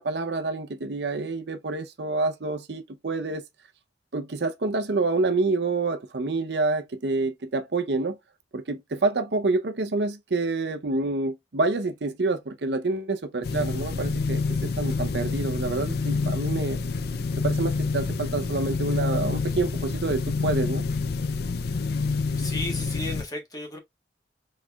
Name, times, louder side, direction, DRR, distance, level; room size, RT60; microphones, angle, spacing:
voice 1, 0.0-3.4 4.1-8.2 8.5-16.8 17.4-20.8, right 3 dB, 70° right, 0.7 m, -27 dB
sound 1, 13.4-23.2, left 4 dB, 60° left, 0.4 m, -27 dB
voice 2, 22.1-23.8, left 2 dB, 20° left, 1.4 m, -35 dB
4.2 x 4.2 x 2.3 m
head